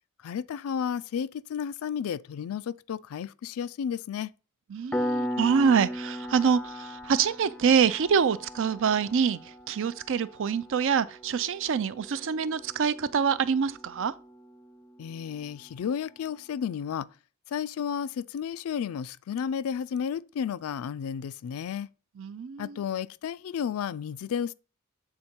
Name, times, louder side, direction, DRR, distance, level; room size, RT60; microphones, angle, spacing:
voice 1, 0.2-4.3 15.0-17.1 17.5-21.9 22.6-24.5, left 7 dB, 75° left, 0.3 m, -32 dB
voice 2, 4.7-9.4 9.7-14.1 22.2-22.7, right 6 dB, 65° right, 0.5 m, -25 dB
Piano, 4.9-15.3, equal, 5° left, 0.4 m, -38 dB
7.8 x 3.7 x 4.4 m
head